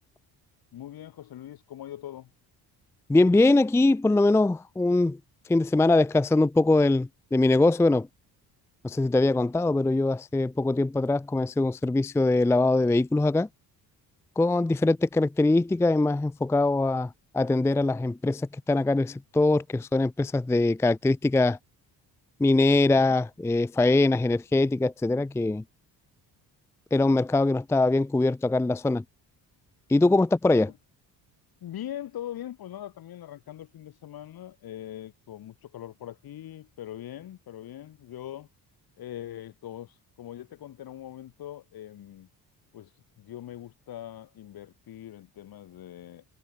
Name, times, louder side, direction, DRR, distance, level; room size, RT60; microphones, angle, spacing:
voice 1, 0.7-2.3 31.6-38.5 39.0-42.3 42.7-42.9 43.2-46.3, left 12 dB, 60° left, 1.9 m, -41 dB
voice 2, 3.1-5.2 5.5-8.1 8.8-13.5 14.4-21.6 22.4-25.6 26.9-29.0 29.9-30.7, left 2 dB, 5° left, 0.5 m, -22 dB
cardioid pair, 125°, 42 cm